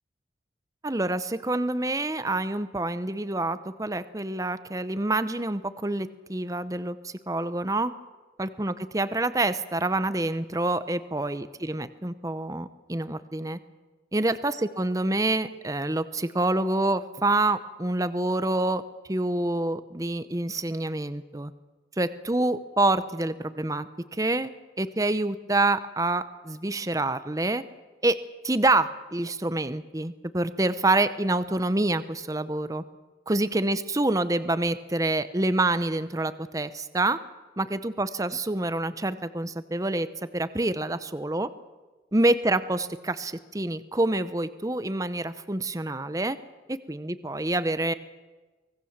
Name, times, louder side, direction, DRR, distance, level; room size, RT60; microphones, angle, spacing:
voice 1, 0.8-7.9 8.4-13.6 14.1-18.8 19.1-21.5 22.0-24.5 24.8-27.6 28.0-28.2 28.4-32.8 33.3-37.2 37.6-40.1 40.3-41.5 42.1-46.4 46.7-47.9, right 2 dB, 20° right, 13 dB, 0.8 m, -27 dB
24.5 x 19.0 x 7.3 m, 1.3 s
head